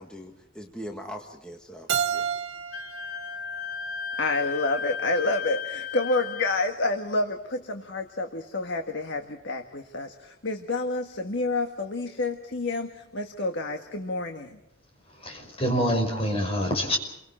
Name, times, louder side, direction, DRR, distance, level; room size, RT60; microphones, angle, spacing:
voice 1, 0.0-2.3, equal, 5° left, 1 dB, 1.7 m, -41 dB
Keyboard (musical), 1.9-4.7, right 8 dB, 65° right, 1.0 m, -32 dB
Wind instrument woodwind instrument, 2.7-6.7, left 6 dB, 80° left, 1.1 m, -35 dB
voice 2, 4.2-14.5, left 2 dB, 55° left, 5 dB, 1.6 m, -29 dB
voice 3, 15.2-17.0, equal, 25° left, 3 dB, 5.4 m, -26 dB
30.0 x 24.0 x 4.4 m, 0.87 s
head